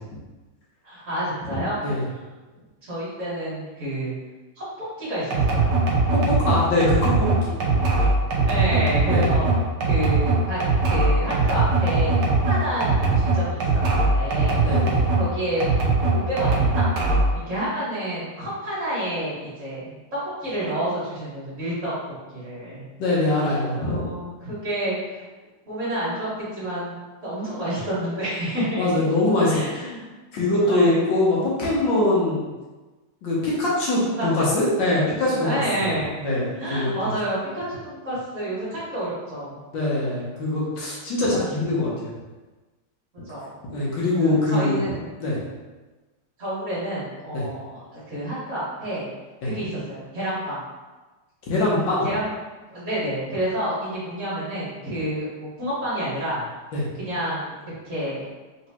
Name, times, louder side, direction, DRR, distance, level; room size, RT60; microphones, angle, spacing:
voice 1, 0.8-1.8 2.8-4.1 4.6-4.7 5.0-5.9 8.5-9.5 9.8-14.6 15.1-16.8 17.5-20.0 20.4-21.9 22.3-22.8 23.8-25.3 25.7-27.0 27.2-28.9 29.5-30.0 30.5-31.0 34.0-34.5 35.3-36.3 36.6-39.6 43.3-43.5 44.1-45.1 46.4-49.1 49.4-50.6 52.0-52.3 52.7-56.4 56.9-58.3, right 1 dB, 40° right, -9 dB, 1.9 m, -29 dB
sound 1, 5.3-15.3 15.6-17.4, right 3 dB, 65° right, 1.1 m, -20 dB
voice 2, 6.1-7.6 9.1-9.4 14.6-15.1 23.0-24.0 28.8-29.8 30.3-32.5 33.2-35.5 36.2-37.1 39.7-42.1 43.7-44.8 45.2-45.4 47.3-47.5 49.4-49.5 51.5-52.1 56.7-56.9, left 2 dB, 65° left, -6 dB, 1.5 m, -23 dB
4.0 x 3.2 x 2.9 m, 1.2 s
omnidirectional pair, 2.3 m